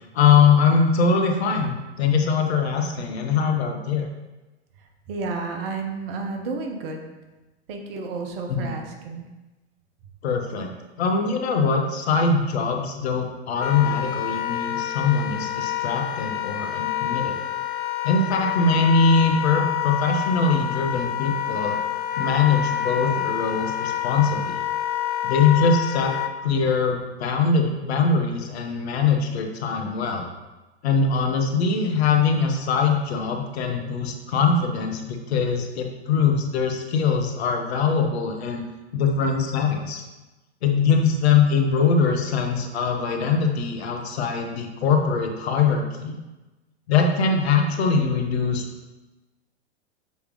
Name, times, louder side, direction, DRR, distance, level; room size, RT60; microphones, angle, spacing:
voice 1, 0.1-4.1 8.5-8.7 10.2-10.7 11.0-17.4 18.0-21.8 22.2-24.6 25.2-26.1 26.4-30.3 30.8-38.6 38.9-40.0 40.6-46.1 46.9-48.6, left 5 dB, 65° left, 3 dB, 1.2 m, -22 dB
voice 2, 5.1-7.1 7.7-9.3, right 4 dB, 55° right, 3 dB, 1.3 m, -31 dB
Wind instrument woodwind instrument, 13.6-26.3, left 11 dB, 30° left, 0.5 m, -27 dB
6.9 x 4.9 x 3.3 m, 1.1 s
hypercardioid pair, 100°, 35 cm